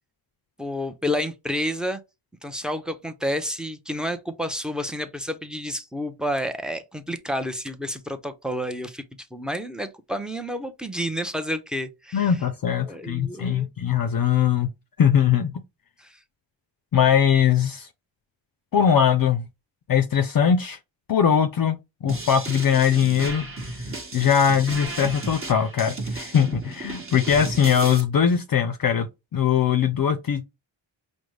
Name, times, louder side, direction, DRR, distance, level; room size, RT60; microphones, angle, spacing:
voice 1, 0.6-2.0 2.4-9.0 9.3-12.4 12.8-13.7 16.0-16.2, equal, ahead, 0.5 m, -30 dB
voice 2, 12.1-14.7 15.0-15.5 16.9-17.9 18.7-19.4 19.9-20.8 21.1-23.8 24.1-29.1 29.3-30.4, left 8 dB, 50° left, 0.5 m, -21 dB
sound 1, 22.1-28.0, right 2 dB, 30° right, 1.1 m, -34 dB
5.0 x 2.1 x 3.1 m
cardioid pair, 80°, 47 cm